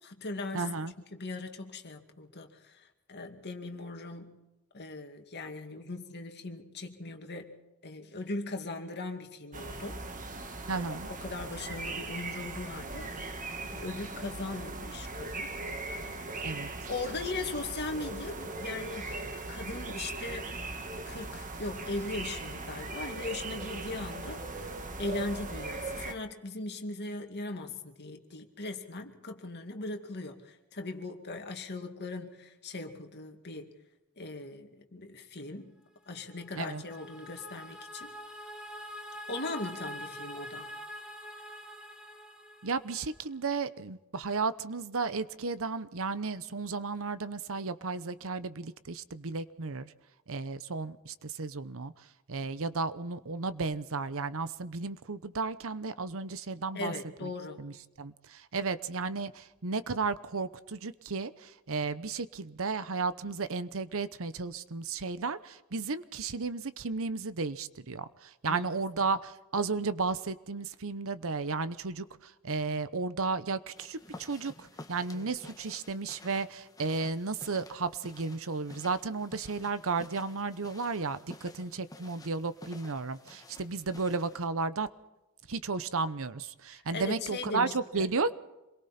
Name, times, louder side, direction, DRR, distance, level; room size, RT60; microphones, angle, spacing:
voice 1, 0.0-0.7 1.1-4.4 4.7-7.6 7.8-10.0 10.7-15.6 16.3-16.6 16.9-20.5 21.1-33.7 34.2-35.7 36.1-38.1 39.3-40.7 56.7-57.6 68.4-68.7 75.1-75.3 86.7-88.1, left 2 dB, 50° left, 4 dB, 2.4 m, -39 dB
voice 2, 0.5-0.9 10.7-11.1 16.4-16.7 36.6-36.8 42.6-49.9 50.3-51.9 52.3-56.9 57.2-57.3 57.6-84.9 85.5-88.3, right 4 dB, 65° right, 14 dB, 0.9 m, -34 dB
sound 1, 9.5-26.1, right 2 dB, 35° right, 2.0 m, -39 dB
sound 2, 36.1-43.3, equal, 5° right, 3.1 m, -45 dB
sound 3, 73.7-84.5, left 2 dB, 15° left, 1.7 m, -52 dB
27.5 x 22.0 x 4.4 m, 1.0 s
head